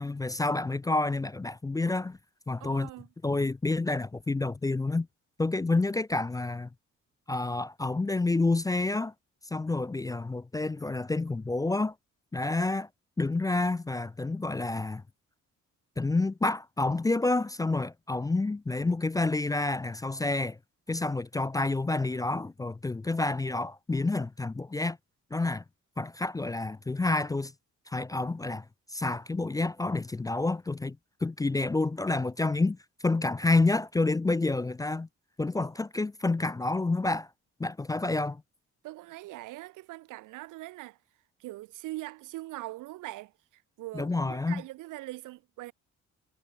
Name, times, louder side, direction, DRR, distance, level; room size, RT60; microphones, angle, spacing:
voice 1, 0.0-2.2 2.5-2.9 3.2-5.1 5.4-6.7 7.3-9.1 9.5-11.9 12.3-12.9 13.2-15.0 16.0-20.6 20.9-25.0 25.3-25.6 26.0-27.5 27.9-28.6 28.9-32.8 33.0-35.1 35.4-37.3 37.6-38.4 43.9-44.6, left 2 dB, 10° left, 0.4 m, -29 dB
voice 2, 2.6-3.1 38.8-41.0 41.4-45.7, right 18 dB, 90° right, 1.0 m, -42 dB
cardioid pair, 90°, 30 cm